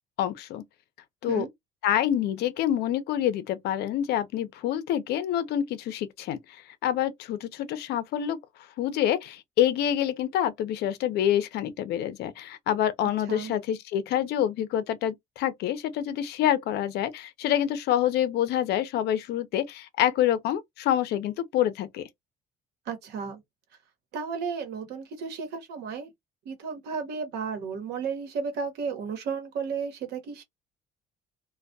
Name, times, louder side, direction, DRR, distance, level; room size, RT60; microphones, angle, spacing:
voice 1, 0.2-0.6 1.2-1.5 1.8-8.4 8.8-22.1, left 11 dB, 75° left, 0.6 m, -27 dB
voice 2, 22.9-23.4 24.1-26.1 26.4-30.4, right 5 dB, 80° right, 1.0 m, -33 dB
2.2 x 2.2 x 2.6 m
cardioid pair, 110°, 17 cm